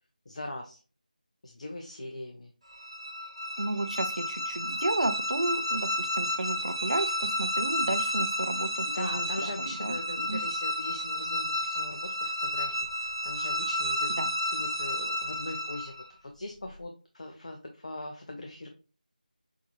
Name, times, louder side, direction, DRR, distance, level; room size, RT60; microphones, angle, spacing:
voice 1, 0.3-0.8 1.4-2.5 8.9-14.1 14.5-15.9 16.2-18.7, left 1 dB, 45° left, 3 dB, 0.7 m, -41 dB
sound 1, 2.7-16.1, equal, 40° right, 1.3 m, -31 dB
voice 2, 3.6-10.0 10.3-10.4 14.2-14.3, right 2 dB, 60° right, 8 dB, 0.7 m, -32 dB
5.9 x 2.7 x 2.9 m, 0.34 s
figure-of-eight pair, 165°, 5 cm